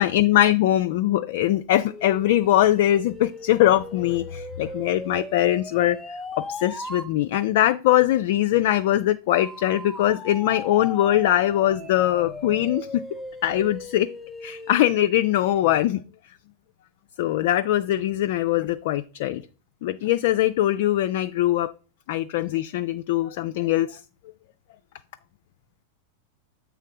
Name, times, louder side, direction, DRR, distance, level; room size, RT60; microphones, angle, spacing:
voice 1, 0.0-6.0 6.3-13.0 13.4-14.1 14.4-16.0 17.2-19.4 19.8-21.7 22.1-24.0, left 13 dB, 50° left, 9 dB, 0.3 m, -22 dB
sound 1, 1.9-7.1 9.3-15.1, left 2 dB, 5° left, 0.6 m, -38 dB
7.5 x 3.4 x 4.7 m, 0.35 s
figure-of-eight pair, 90°, 0 cm